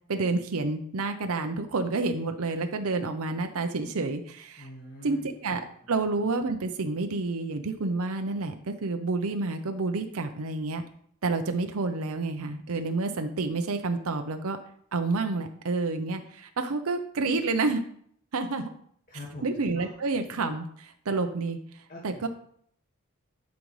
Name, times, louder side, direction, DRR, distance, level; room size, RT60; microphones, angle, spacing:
voice 1, 0.1-4.7 5.0-5.6 5.9-10.8 11.2-14.6 14.9-17.8 18.3-18.7 19.4-21.6 22.0-22.3, right 3 dB, 70° right, 6 dB, 0.6 m, -29 dB
voice 2, 4.6-5.3 19.1-19.9 21.9-22.3, left 1 dB, 40° left, -4 dB, 1.6 m, -44 dB
12.0 x 5.2 x 3.1 m, 0.65 s
head